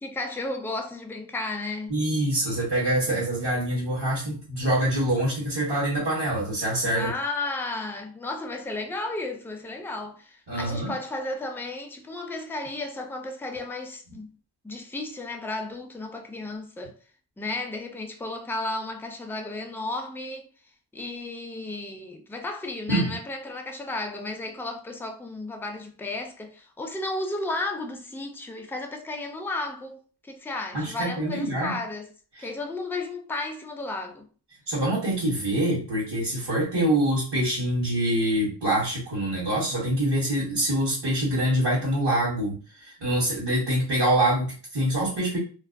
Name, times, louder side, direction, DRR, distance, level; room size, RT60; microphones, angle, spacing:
voice 1, 0.0-2.0 6.9-14.3 14.6-17.0 17.4-20.5 20.9-32.1 32.4-34.3, left 2 dB, 5° left, 0.3 m, -33 dB
voice 2, 1.9-7.1 10.5-10.9 22.9-23.1 30.7-31.8 32.3-32.5 34.7-45.4, right 1 dB, 70° right, 1.1 m, -25 dB
2.3 x 2.1 x 2.4 m
wide cardioid pair, 70°, 42 cm